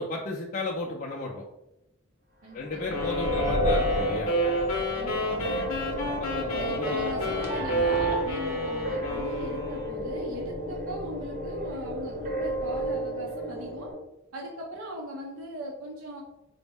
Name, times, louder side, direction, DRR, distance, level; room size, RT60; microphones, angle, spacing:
voice 1, 0.0-1.4 2.5-4.3 6.0-7.0, left 2 dB, 40° left, -3 dB, 0.4 m, -34 dB
voice 2, 2.4-3.4 4.9-5.7 6.5-13.9 14.3-16.2, equal, 65° right, -1 dB, 0.5 m, -39 dB
sound 1, 2.6-13.9, equal, 40° right, 0.8 m, -31 dB
sound 2, 2.9-10.1, right 1 dB, 65° left, 0.7 m, -30 dB
4.1 x 2.0 x 3.4 m, 0.87 s
head